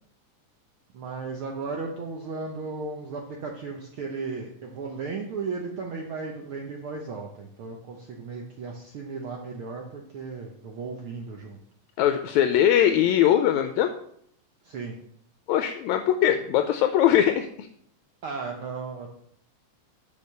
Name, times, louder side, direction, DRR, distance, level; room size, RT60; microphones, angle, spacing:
voice 1, 0.9-11.6 14.6-14.9 18.2-19.1, right 4 dB, 75° right, 1 dB, 1.2 m, -35 dB
voice 2, 12.0-13.9 15.5-17.7, left 10 dB, 80° left, 7 dB, 1.8 m, -21 dB
6.9 x 5.0 x 6.6 m, 0.68 s
omnidirectional pair, 3.5 m